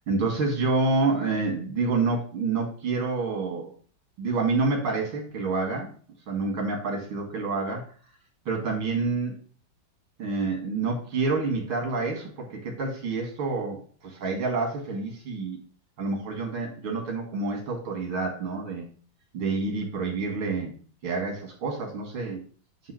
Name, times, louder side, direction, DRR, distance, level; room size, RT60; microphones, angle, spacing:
voice 1, 0.1-3.7 4.2-5.9 6.3-7.9 8.5-9.4 10.2-15.6 16.0-18.9 19.3-20.7 21.0-22.4, right 3 dB, 90° right, 1 dB, 2.5 m, -28 dB
7.6 x 2.8 x 5.7 m, 0.40 s
omnidirectional pair, 2.2 m